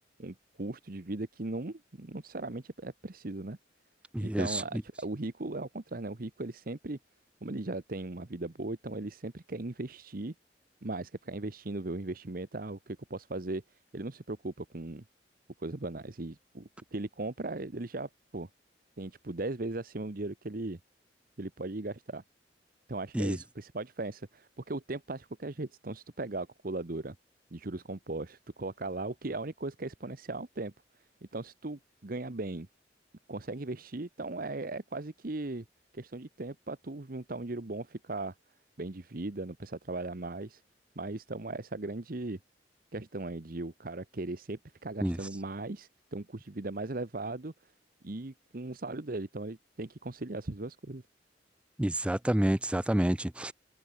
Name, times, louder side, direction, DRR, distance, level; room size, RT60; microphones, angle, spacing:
voice 1, 0.2-3.6 4.2-7.0 7.4-10.3 10.8-13.6 13.9-15.0 15.6-18.5 19.0-20.8 21.4-22.2 22.9-27.2 27.5-30.7 31.3-32.7 33.3-35.6 35.9-38.3 38.8-40.6 41.0-42.4 42.9-47.5 48.0-51.0, right 2 dB, 50° right, 1.1 m, -38 dB
voice 2, 4.1-4.6 23.1-23.4 45.0-45.2 51.8-53.5, right 1 dB, 5° right, 0.4 m, -28 dB
head